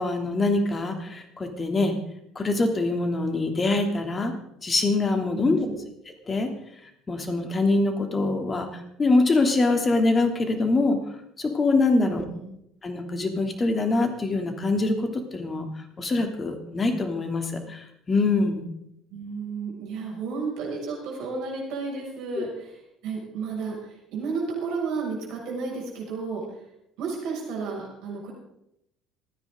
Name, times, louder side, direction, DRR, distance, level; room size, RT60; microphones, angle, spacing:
voice 1, 0.0-1.9 2.3-4.3 4.6-5.7 6.3-6.5 7.1-11.0 11.4-12.2 12.8-15.6 16.0-18.6 22.4-22.5, left 3 dB, 30° left, 5 dB, 3.1 m, -24 dB
voice 2, 5.3-5.8 11.9-12.5 19.1-22.8 23.0-26.4 27.0-28.3, right 4 dB, 65° right, -1 dB, 6.7 m, -32 dB
27.0 x 10.0 x 3.9 m, 0.78 s
hypercardioid pair, 60°, 0 cm